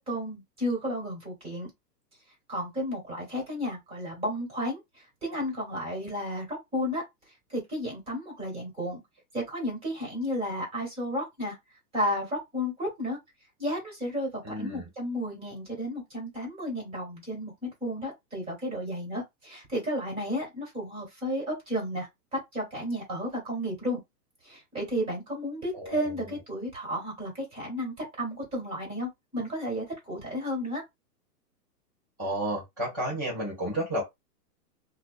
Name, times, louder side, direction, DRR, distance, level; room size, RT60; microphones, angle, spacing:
voice 1, 0.0-1.7 2.5-7.0 7.5-9.0 9.3-11.6 11.9-13.2 13.6-24.0 24.4-30.8, equal, 10° right, 1.3 m, -33 dB
voice 2, 14.4-14.9 25.7-26.0 32.2-34.1, right 1 dB, 10° left, 0.3 m, -31 dB
2.6 x 2.1 x 2.4 m
hypercardioid pair, 155°, 49 cm